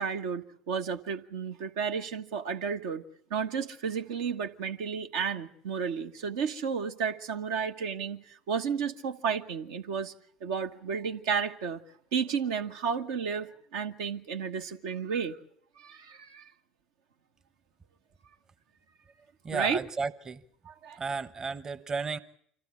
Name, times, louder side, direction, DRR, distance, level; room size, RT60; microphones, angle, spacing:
voice 1, 0.0-3.0 3.3-10.1 10.4-11.8 12.1-15.4 15.8-16.5 19.5-19.8 20.7-21.0, right 6 dB, 70° right, 1.2 m, -32 dB
voice 2, 19.4-20.4 21.0-22.2, right 4 dB, 30° right, 1.1 m, -33 dB
25.5 x 15.5 x 8.4 m
hypercardioid pair, 65°, 2 cm